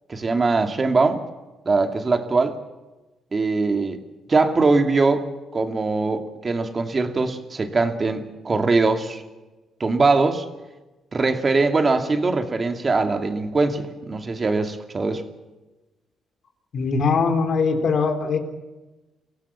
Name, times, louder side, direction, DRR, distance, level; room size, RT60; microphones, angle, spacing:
voice 1, 0.1-1.2 1.7-2.6 3.3-4.0 4.3-5.2 5.5-9.2 9.8-10.4 11.1-15.2, right 3 dB, 30° right, 7 dB, 2.3 m, -21 dB
voice 2, 16.7-18.4, left 4 dB, 55° left, 6 dB, 3.4 m, -21 dB
24.0 x 16.5 x 7.3 m, 1.1 s
cardioid pair, 90°, 0 cm